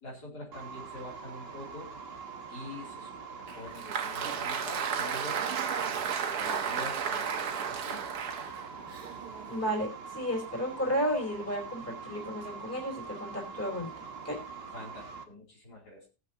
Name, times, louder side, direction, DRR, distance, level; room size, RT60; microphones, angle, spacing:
voice 1, 0.0-1.9 2.5-3.2 3.6-5.5 6.4-8.0 14.7-16.1, left 1 dB, 75° left, -2 dB, 3.5 m, -45 dB
sound 1, 0.5-15.2, right 5 dB, 40° right, 1.2 m, -44 dB
Applause, 3.5-9.8, right 7 dB, 70° right, 1.5 m, -33 dB
voice 2, 9.5-14.4, equal, 10° left, -1 dB, 3.1 m, -33 dB
19.5 x 7.5 x 2.8 m, 0.30 s
omnidirectional pair, 1.8 m